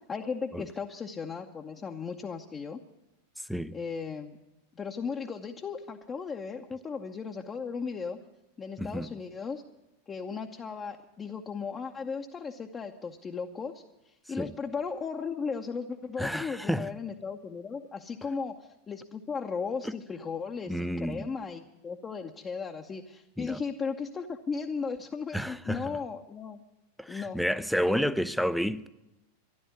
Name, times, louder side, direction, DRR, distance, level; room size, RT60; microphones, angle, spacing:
voice 1, 0.1-2.8 3.7-4.4 4.8-8.2 8.6-9.6 10.1-13.8 14.3-26.6 27.1-27.4 27.7-28.1, left 5 dB, 20° left, 0.8 m, -36 dB
voice 2, 3.4-3.8 8.8-9.1 14.4-14.5 16.2-16.9 19.8-20.0 20.7-21.4 23.4-23.6 25.3-26.0 27.0-28.9, equal, ahead, 0.5 m, -31 dB
13.0 x 11.5 x 9.5 m
figure-of-eight pair, 90°, 0 cm